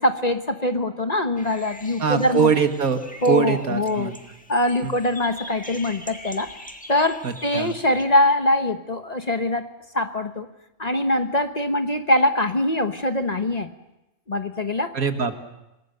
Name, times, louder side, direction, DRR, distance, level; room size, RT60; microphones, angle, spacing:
voice 1, 0.0-2.5 3.2-4.1 4.5-6.5 6.9-9.7 9.9-10.5 10.8-13.7 14.3-14.9, left 1 dB, 30° left, 7 dB, 1.1 m, -23 dB
sound 1, 1.4-8.0, left 1 dB, 5° left, 1.5 m, -43 dB
voice 2, 2.0-4.2 4.8-4.9 7.2-7.8 14.9-15.4, right 6 dB, 80° right, 7 dB, 2.1 m, -23 dB
27.5 x 19.5 x 6.7 m, 0.92 s
omnidirectional pair, 1.5 m